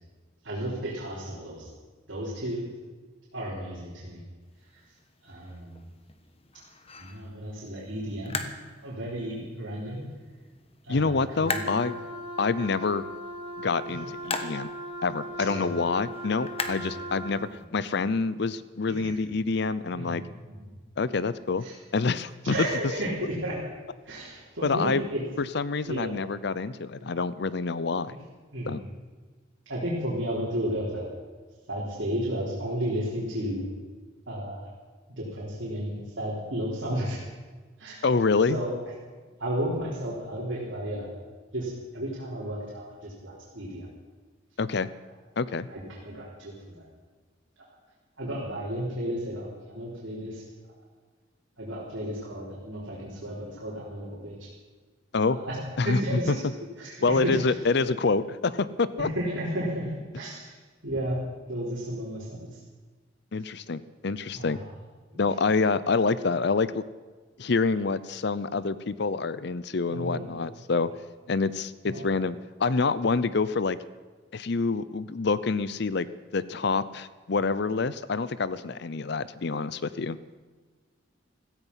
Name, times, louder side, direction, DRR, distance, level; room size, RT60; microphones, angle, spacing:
voice 1, 0.4-1.7 2.1-2.7 3.3-4.2 4.7-4.8 5.2-5.8 7.0-8.4 8.8-10.0 10.8-11.8 12.4-12.5 13.9-14.0 15.4-15.7 16.6-17.0 18.9-19.1 19.9-20.7 21.6-21.7 22.4-23.6 24.0-25.2 25.9-26.1 28.5-28.9 29.7-31.1 31.7-33.7 34.3-34.7 35.1-37.2 37.8-38.0 38.5-38.7 39.4-41.1 41.5-43.9 45.7-46.9 48.2-50.4 51.6-54.5 55.3-56.4 56.8-57.6 59.0-60.5 60.8-62.6 64.3-64.6 65.1-65.3 69.9-70.4 71.8-72.1, right 1 dB, 70° right, -7 dB, 4.2 m, -33 dB
sound 1, 4.4-17.6, left 4 dB, 30° left, 1.2 m, -41 dB
voice 2, 10.9-12.0 12.4-13.0 13.6-14.7 15.0-20.2 21.0-21.6 21.9-22.5 24.6-25.0 25.4-28.2 28.7-28.8 38.0-38.6 44.6-44.9 45.4-45.7 55.1-55.4 55.8-56.4 57.0-59.1 63.3-64.6 65.2-66.8 67.4-70.9 71.3-73.8 74.3-76.1 76.3-80.2, left 4 dB, 55° left, 16 dB, 0.6 m, -27 dB
Wind instrument woodwind instrument, 11.4-17.4, equal, 25° right, 2.9 m, -39 dB
16.5 x 15.5 x 5.7 m, 1.4 s
head